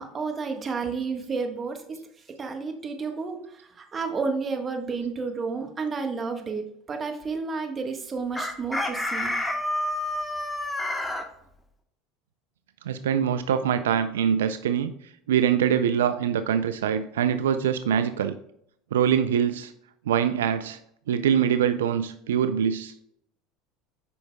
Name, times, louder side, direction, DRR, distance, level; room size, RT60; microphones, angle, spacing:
voice 1, 0.0-2.0 2.4-9.4, right 4 dB, 30° right, 5 dB, 1.4 m, -31 dB
Chicken rooster, 8.4-11.2, left 1 dB, 10° left, 1.1 m, -29 dB
voice 2, 12.9-14.9 15.3-18.4 18.9-19.7 20.1-20.8 21.1-22.9, right 8 dB, 85° right, 11 dB, 0.3 m, -24 dB
8.1 x 5.6 x 2.2 m, 0.73 s
hypercardioid pair, 85°, 0 cm